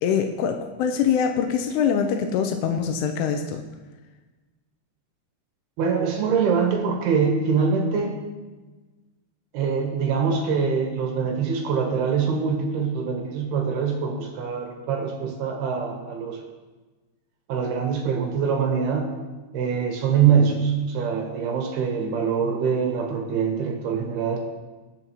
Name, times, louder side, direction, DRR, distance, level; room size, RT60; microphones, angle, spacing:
voice 1, 0.0-3.6, left 7 dB, 85° left, 5 dB, 2.3 m, -24 dB
voice 2, 5.8-8.2 9.5-16.4 17.5-19.1 19.5-24.4, right 6 dB, 70° right, 2 dB, 2.8 m, -24 dB
20.0 x 6.7 x 3.1 m, 1.2 s
omnidirectional pair, 5.5 m